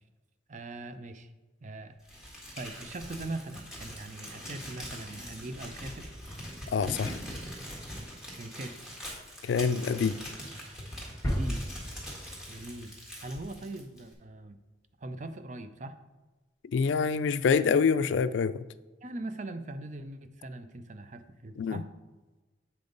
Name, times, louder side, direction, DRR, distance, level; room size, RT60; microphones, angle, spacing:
voice 1, 0.5-1.3 1.6-2.0 2.6-6.1 8.3-8.8 10.0-10.1 11.2-11.6 12.5-12.9 13.2-14.6 15.0-16.0 19.0-21.9, right 2 dB, 40° right, 9 dB, 0.5 m, -41 dB
Crumpling crinkling, 2.1-14.1, equal, 5° right, 1.7 m, -43 dB
voice 2, 6.7-7.2 9.4-10.1 16.7-18.6 21.6-21.8, left 5 dB, 75° left, 15 dB, 0.3 m, -26 dB
sound 1, 11.2-13.9, equal, 15° left, 1.5 m, -35 dB
8.2 x 5.2 x 3.9 m, 1.2 s
head